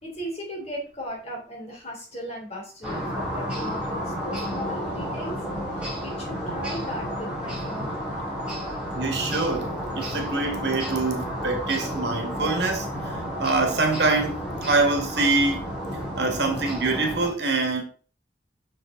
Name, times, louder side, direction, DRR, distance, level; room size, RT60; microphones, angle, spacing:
voice 1, 0.0-5.4 5.7-8.0, equal, 35° left, 3.2 m, -37 dB
sound 1, 2.8-17.3, equal, 5° right, 3.0 m, -31 dB
voice 2, 8.9-9.7 10.0-14.4 14.7-15.6 16.1-17.8, right 3 dB, 70° right, 1.8 m, -25 dB
6.7 x 6.3 x 3.8 m
head